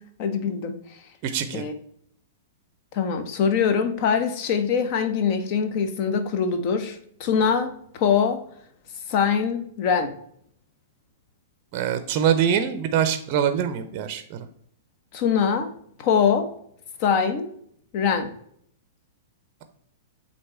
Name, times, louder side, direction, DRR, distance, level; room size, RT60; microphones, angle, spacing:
voice 1, 0.2-0.7 1.5-1.7 2.9-8.4 9.1-10.1 15.1-15.7 16.0-16.5 17.0-17.5 17.9-18.3, left 6 dB, 45° left, 9 dB, 0.8 m, -23 dB
voice 2, 1.2-1.6 11.7-14.5, right 8 dB, 40° right, 9 dB, 0.6 m, -24 dB
7.7 x 2.8 x 4.3 m, 0.67 s
figure-of-eight pair, 105°, 0 cm